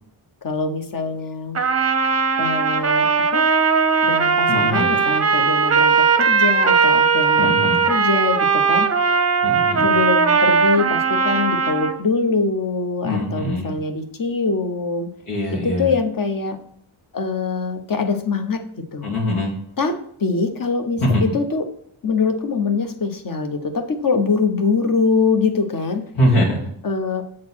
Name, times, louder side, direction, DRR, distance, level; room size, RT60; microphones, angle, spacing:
voice 1, 0.4-1.6 2.4-3.5 4.0-7.5 7.8-8.9 9.8-15.1 15.5-16.6 17.1-18.6 18.9-19.1 19.8-21.7 22.0-26.0 26.8-27.2, left 4 dB, 45° left, 6 dB, 0.9 m, -23 dB
Trumpet, 1.5-12.0, right 5 dB, 30° right, 0.6 m, -18 dB
voice 2, 4.5-4.9 7.4-7.8 9.4-9.9 13.0-13.7 15.3-15.9 19.0-19.5 21.0-21.2 26.1-26.7, left 1 dB, 90° left, -3 dB, 2.6 m, -22 dB
7.5 x 4.0 x 6.2 m, 0.67 s
wide cardioid pair, 145°, 48 cm